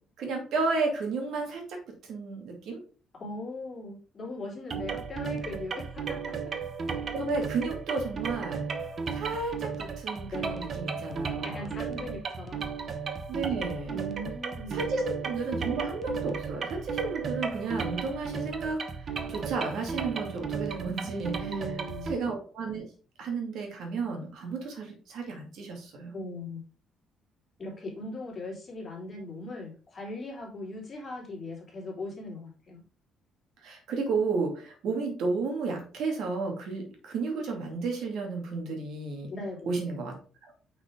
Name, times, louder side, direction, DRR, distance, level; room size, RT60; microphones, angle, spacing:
voice 1, 0.2-1.8 2.0-2.8 7.1-8.6 9.1-11.7 13.3-14.0 14.7-18.8 19.3-21.3 22.1-22.8 23.2-26.1 33.6-39.3 39.7-40.1, right 4 dB, 70° right, 2 dB, 2.2 m, -32 dB
voice 2, 3.1-6.3 10.3-10.6 11.4-12.6 13.9-15.0 21.4-22.1 26.1-26.6 27.6-32.8 39.3-39.7, left 1 dB, 30° left, -4 dB, 3.3 m, -39 dB
sound 1, 4.7-22.2, right 5 dB, 40° right, 0.8 m, -35 dB
5.9 x 5.8 x 3.6 m, 0.38 s
cardioid pair, 135°, 0 cm